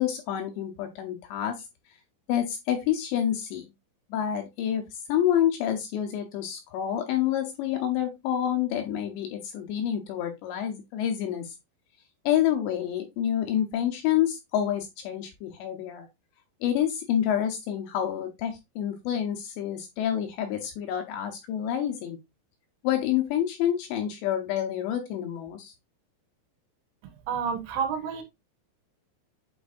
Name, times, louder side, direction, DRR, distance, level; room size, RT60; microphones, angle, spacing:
voice 1, 0.0-1.7 2.3-3.6 4.1-11.5 12.3-16.1 16.6-22.2 22.8-25.7, left 10 dB, 75° left, 2.7 m, -28 dB
voice 2, 27.3-28.2, right 7 dB, 75° right, 3.3 m, -29 dB
8.7 x 4.5 x 2.6 m
omnidirectional pair, 5.8 m